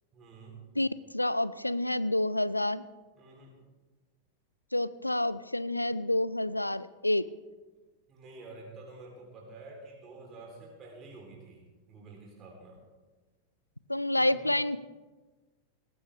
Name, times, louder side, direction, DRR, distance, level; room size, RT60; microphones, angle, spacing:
voice 1, 0.1-0.6 3.1-3.5 8.1-11.6 11.9-12.8 14.2-14.5, right 3 dB, 30° right, -1 dB, 3.5 m, -49 dB
voice 2, 1.1-2.8 4.7-7.3 13.9-14.8, left 1 dB, 85° left, 18 dB, 0.4 m, -28 dB
18.5 x 15.0 x 3.4 m, 1.3 s
figure-of-eight pair, 90°, 0 cm